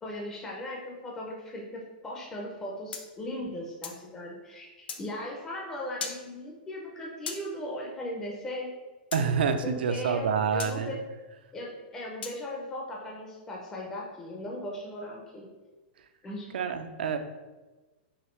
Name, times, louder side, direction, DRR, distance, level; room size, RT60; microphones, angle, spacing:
voice 1, 0.0-8.7 9.6-11.0 11.5-15.5 16.2-16.5, left 1 dB, 10° left, -2 dB, 0.4 m, -38 dB
sound 1, 2.9-4.0 4.9-5.0 6.0-6.2 7.3-7.4 9.1-9.2 10.6-10.7 12.2-12.4, left 6 dB, 90° left, 0.5 m, -37 dB
voice 2, 9.1-11.0 16.5-17.2, right 6 dB, 90° right, 9 dB, 0.4 m, -27 dB
4.9 x 2.7 x 3.1 m, 1.2 s
supercardioid pair, 170°, 5 cm